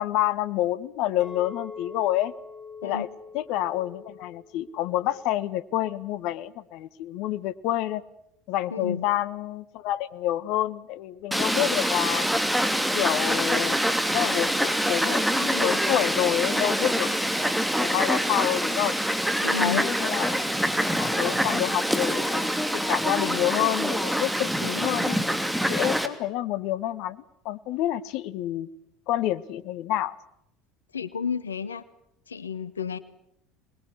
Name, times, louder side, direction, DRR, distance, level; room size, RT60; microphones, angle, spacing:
voice 1, 0.0-2.3 2.8-3.1 3.3-8.0 8.5-12.3 12.9-13.8 14.1-17.5 17.8-18.9 19.5-20.3 21.0-25.2 25.7-28.7 29.1-30.1, left 13 dB, 60° left, 15 dB, 1.3 m, -28 dB
Chink clink, 1.2-5.5 5.9-6.3, left 5 dB, 30° left, 6.7 m, -44 dB
voice 2, 8.7-9.1 19.4-19.8 30.9-31.8 32.3-33.0, left 6 dB, 85° left, 15 dB, 1.2 m, -31 dB
Fowl, 11.3-26.1, equal, 5° right, 3.0 m, -25 dB
26.5 x 21.0 x 9.8 m, 0.78 s
hypercardioid pair, 70°, 0 cm